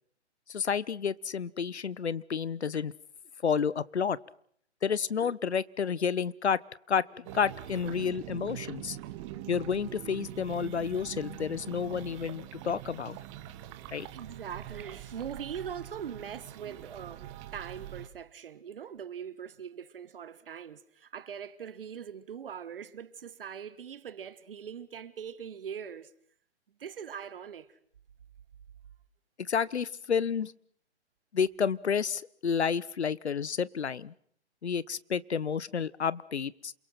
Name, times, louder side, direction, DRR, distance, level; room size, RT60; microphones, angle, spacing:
voice 1, 0.5-2.9 3.4-4.2 4.8-6.6 6.9-9.0 9.5-13.2 13.9-14.1 29.5-30.5 31.3-34.1 34.6-36.7, left 6 dB, 70° left, 1.1 m, -30 dB
sound 1, 7.3-18.1, right 13 dB, 25° right, 1.6 m, -44 dB
voice 2, 14.1-26.1 26.8-27.8, right 8 dB, 50° right, 1.4 m, -42 dB
28.5 x 23.5 x 5.8 m
figure-of-eight pair, 135°, 35 cm